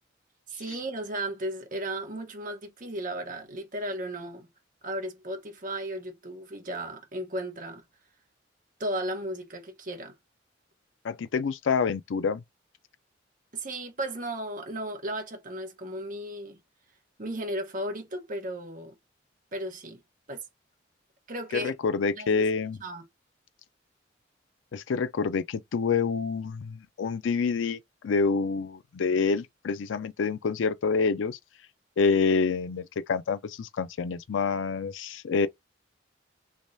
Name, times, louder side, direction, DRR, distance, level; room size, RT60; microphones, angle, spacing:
voice 1, 0.5-4.5 4.8-7.8 8.8-10.1 13.5-16.6 17.2-18.9 19.5-20.0 20.3-20.4 21.3-21.7 22.2-22.4 22.8-23.0, right 1 dB, 45° right, 1.1 m, -35 dB
voice 2, 11.0-12.4 21.5-22.8 24.7-31.4 32.0-35.5, left 5 dB, 85° left, 0.4 m, -27 dB
3.4 x 3.0 x 2.7 m
head